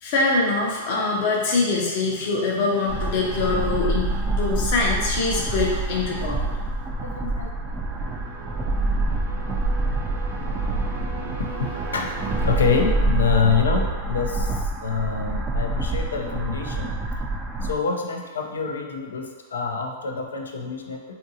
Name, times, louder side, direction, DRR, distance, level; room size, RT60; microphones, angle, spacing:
voice 1, 0.0-6.4, left 3 dB, 55° left, -3 dB, 0.7 m, -24 dB
sound 1, 1.0-13.6, right 2 dB, 80° right, 0.7 m, -41 dB
sound 2, 2.9-17.7, right 2 dB, 20° right, 0.3 m, -26 dB
voice 2, 7.0-7.5 11.4-14.5 14.8-17.0 17.6-21.0, left 5 dB, 90° left, 2 dB, 0.4 m, -26 dB
2.7 x 2.6 x 2.6 m, 1.3 s
hypercardioid pair, 120°, 0 cm